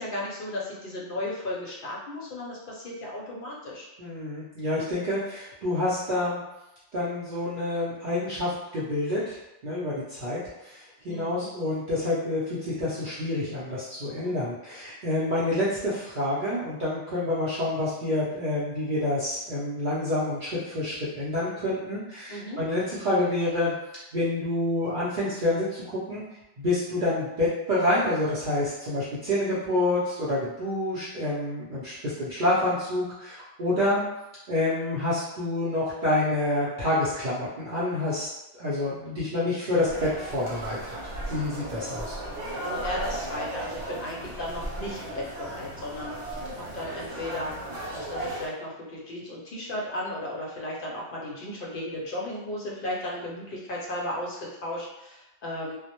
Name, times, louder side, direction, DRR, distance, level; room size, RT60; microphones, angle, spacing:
voice 1, 0.0-3.9 11.1-11.5 14.2-14.3 22.3-22.6 42.6-47.5 47.9-55.8, left 1 dB, 60° left, -3 dB, 0.6 m, -35 dB
voice 2, 4.0-6.4 6.9-9.4 9.6-23.7 24.1-26.2 26.6-34.0 34.5-38.3 38.6-41.0 41.3-42.2, left 1 dB, 55° right, -9 dB, 0.6 m, -28 dB
sound 1, 39.9-48.5, right 1 dB, 75° right, 1.1 m, -36 dB
2.1 x 2.0 x 2.8 m, 0.93 s
omnidirectional pair, 1.2 m